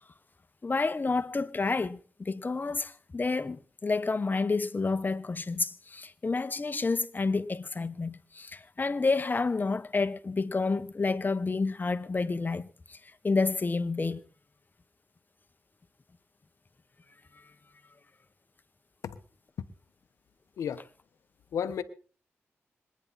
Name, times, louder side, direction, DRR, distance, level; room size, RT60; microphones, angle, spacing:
voice 1, 0.6-13.0 13.2-14.2 17.3-17.4, left 3 dB, 35° left, 1.3 m, -29 dB
voice 2, 21.5-21.8, left 8 dB, 90° left, 1.1 m, -32 dB
26.0 x 9.8 x 4.1 m
cardioid pair, 55°, 5 cm